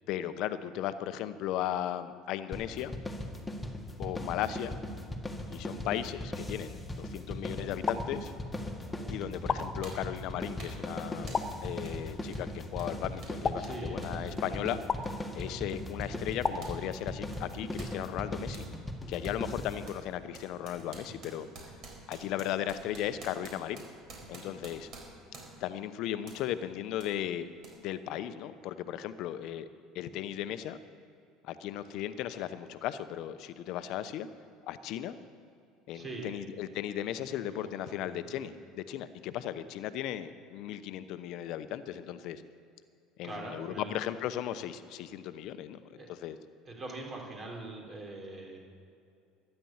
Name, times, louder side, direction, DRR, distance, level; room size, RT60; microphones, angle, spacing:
voice 1, 0.1-3.0 4.0-4.8 5.5-8.3 9.1-14.8 15.3-18.6 19.1-21.5 22.1-23.8 24.3-24.9 25.6-27.5 27.7-29.7 29.9-30.8 31.4-34.3 34.7-35.2 35.9-42.4 43.2-46.4, left 11 dB, 65° left, 12 dB, 0.8 m, -36 dB
sound 1, 2.5-20.0, left 1 dB, 10° left, 1.9 m, -39 dB
sound 2, 7.9-8.8 9.5-10.4 11.3-12.2 13.4-14.3 14.9-15.7 16.4-17.4, left 5 dB, 30° left, 1.0 m, -36 dB
sound 3, 9.0-9.1 9.8-10.1 10.6-10.9 11.3-11.5 11.8-12.0 12.3-16.8 17.1-18.7 19.2-19.4 19.9-25.7 26.3-26.5 27.0-27.1 27.6-27.7, right 3 dB, 55° right, 4.2 m, -50 dB
voice 2, 13.6-14.4 35.9-36.4 37.3-38.5 43.2-44.0 46.0-46.1 46.6-48.6, right 2 dB, 35° right, 0 dB, 3.8 m, -43 dB
13.0 x 10.0 x 7.3 m, 2.4 s
hypercardioid pair, 75°, 0 cm